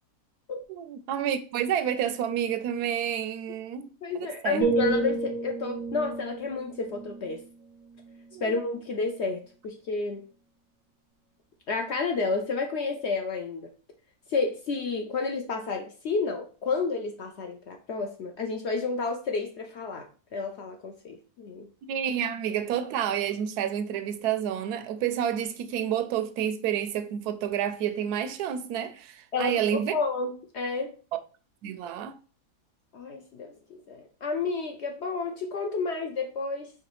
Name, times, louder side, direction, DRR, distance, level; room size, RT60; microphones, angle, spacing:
voice 1, 0.7-3.9 4.1-4.7 8.3-8.6 21.9-29.9 31.6-32.1, right 9 dB, 90° right, 1.1 m, -29 dB
voice 2, 4.0-7.4 8.4-10.3 11.7-13.7 14.3-21.7 29.3-30.9 32.9-36.7, left 4 dB, 60° left, 0.7 m, -31 dB
sound 1, 4.6-8.5 9.0-9.3, right 3 dB, 70° right, 0.8 m, -31 dB
4.7 x 3.3 x 3.0 m
omnidirectional pair, 1.6 m